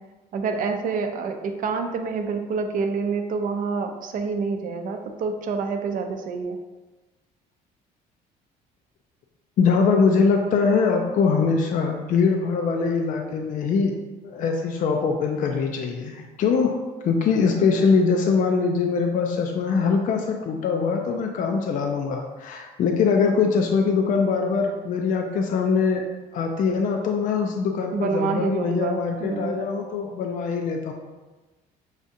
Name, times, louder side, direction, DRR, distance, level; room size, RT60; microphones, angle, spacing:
voice 1, 0.3-6.6 27.9-29.5, right 4 dB, 55° right, 5 dB, 0.5 m, -27 dB
voice 2, 9.6-14.0 14.2-16.8 17.0-26.1 26.3-30.9, left 5 dB, 50° left, 3 dB, 0.4 m, -22 dB
6.3 x 2.4 x 2.7 m, 1.2 s
cardioid pair, 110°, 17 cm